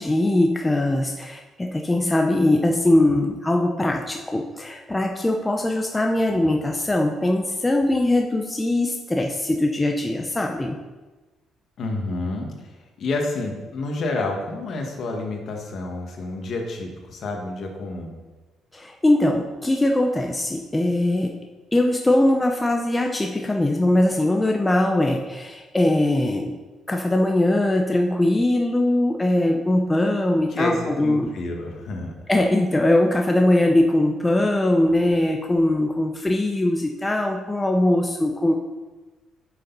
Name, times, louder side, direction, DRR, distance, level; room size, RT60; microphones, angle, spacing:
voice 1, 0.0-10.8 18.7-21.3 21.7-26.5 26.9-31.3 32.3-38.5, left 1 dB, 15° left, 2 dB, 0.7 m, -21 dB
voice 2, 11.8-18.1 30.5-32.1, left 2 dB, 55° left, 2 dB, 1.8 m, -29 dB
9.8 x 6.7 x 4.1 m, 1.2 s
cardioid pair, 100°, 0 cm